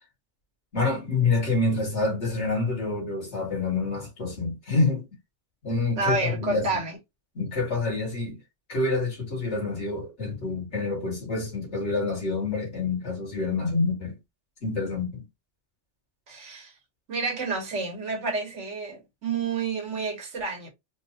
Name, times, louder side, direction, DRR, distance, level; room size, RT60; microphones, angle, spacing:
voice 1, 0.7-5.0 5.6-6.8 7.4-8.4 8.7-14.1 14.6-15.2, left 3 dB, 70° left, 2.1 m, -27 dB
voice 2, 5.9-7.0 16.3-16.7 17.1-20.7, right 3 dB, 80° right, 1.5 m, -29 dB
4.4 x 2.1 x 2.8 m
omnidirectional pair, 1.2 m